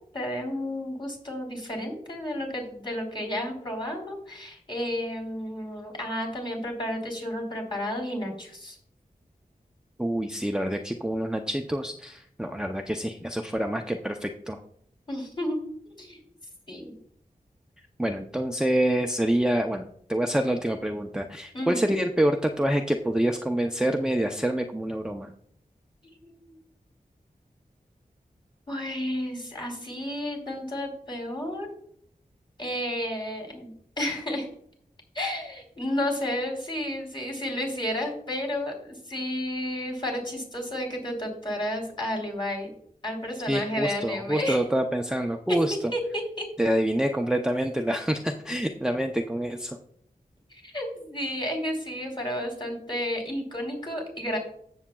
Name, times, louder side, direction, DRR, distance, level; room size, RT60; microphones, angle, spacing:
voice 1, 0.1-8.8 15.1-15.6 15.8-16.2 16.7-16.9 21.5-21.9 26.0-26.4 28.7-31.7 32.6-33.7 34.0-34.5 35.1-42.7 43.0-44.6 45.9-46.5 50.5-54.4, left 1 dB, 30° left, 0 dB, 3.4 m, -32 dB
voice 2, 10.0-14.6 18.0-25.3 43.5-45.8 46.6-49.8, right 1 dB, 5° right, 3 dB, 0.6 m, -27 dB
15.0 x 7.1 x 2.3 m, 0.65 s
wide cardioid pair, 80°, 15 cm